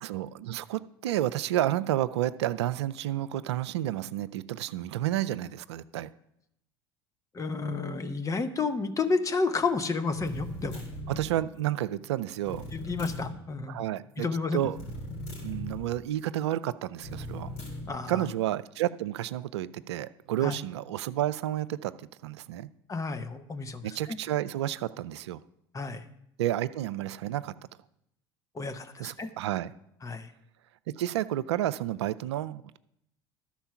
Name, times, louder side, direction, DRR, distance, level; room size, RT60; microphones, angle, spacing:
voice 1, 0.0-6.1 11.1-12.6 13.7-14.3 14.5-14.8 15.4-17.5 18.1-22.7 23.8-25.4 26.4-27.5 29.0-29.7 30.9-32.8, right 13 dB, 80° right, 15 dB, 0.4 m, -31 dB
voice 2, 7.3-10.8 12.7-13.8 14.2-14.7 17.9-18.2 20.4-20.5 22.9-23.8 24.1-24.2 25.7-26.1 28.5-29.3 30.0-30.3, left 4 dB, 25° left, 10 dB, 1.0 m, -31 dB
sound 1, 10.2-11.3 12.4-13.4 14.7-15.9 17.0-17.9, left 1 dB, 65° left, 3.5 m, -38 dB
12.5 x 4.4 x 5.8 m, 0.78 s
hypercardioid pair, 75°, 14 cm